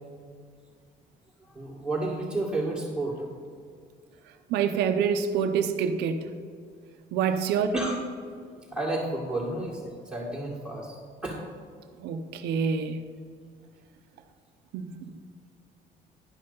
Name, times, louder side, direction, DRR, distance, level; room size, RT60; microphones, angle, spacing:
voice 1, 1.5-3.2 7.3-7.4 7.7-8.0 8.7-11.0 11.2-11.4, right 2 dB, 5° right, -7 dB, 2.0 m, -31 dB
voice 2, 4.5-6.3 7.1-7.7 12.0-13.0 14.7-14.9, right 6 dB, 85° right, 7 dB, 0.7 m, -26 dB
11.0 x 5.5 x 5.4 m, 2.1 s
cardioid pair, 110°, 17 cm